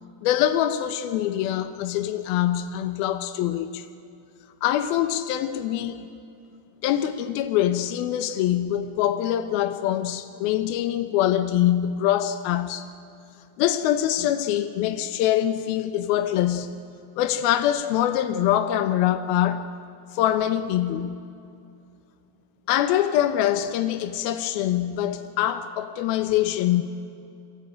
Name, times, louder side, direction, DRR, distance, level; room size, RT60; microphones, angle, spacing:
voice 1, 0.2-3.9 4.6-6.1 6.8-12.9 13.6-16.8 17.2-19.7 20.1-21.2 22.7-26.8, left 11 dB, 85° left, 2.1 m, -24 dB
23.5 x 20.5 x 8.9 m
omnidirectional pair, 5.7 m